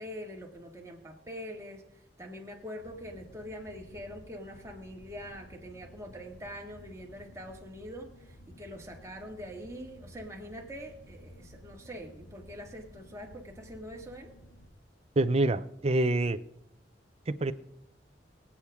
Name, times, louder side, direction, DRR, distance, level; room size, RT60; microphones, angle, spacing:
voice 1, 0.0-1.8 2.2-14.3, equal, 15° right, 0 dB, 1.9 m, -44 dB
sound 1, 2.8-14.7, equal, 80° left, 1.9 m, -54 dB
voice 2, 15.2-16.4 17.4-17.5, right 2 dB, 35° right, 14 dB, 0.6 m, -26 dB
23.0 x 8.6 x 3.6 m, 0.80 s
head